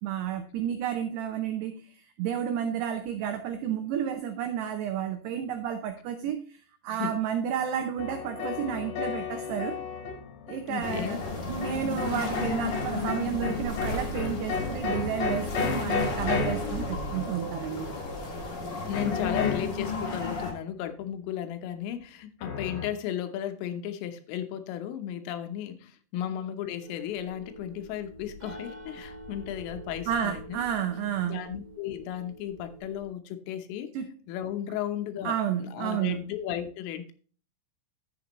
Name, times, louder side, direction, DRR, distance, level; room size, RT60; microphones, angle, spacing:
voice 1, 0.0-9.8 10.5-17.9 30.1-31.5 33.9-34.1 35.2-36.2, right 9 dB, 85° right, 2.3 m, -31 dB
sound 1, 8.0-17.5 18.9-20.2 22.4-22.9, left 5 dB, 60° left, 2.8 m, -33 dB
voice 2, 10.6-11.2 18.4-18.5 18.9-30.6 31.2-33.9 34.3-37.1, left 10 dB, 80° left, 3.5 m, -35 dB
sound 2, 10.8-20.5, left 3 dB, 40° left, 1.5 m, -34 dB
sound 3, 26.8-33.1, right 1 dB, 35° right, 2.9 m, -46 dB
11.5 x 8.2 x 3.0 m
omnidirectional pair, 5.8 m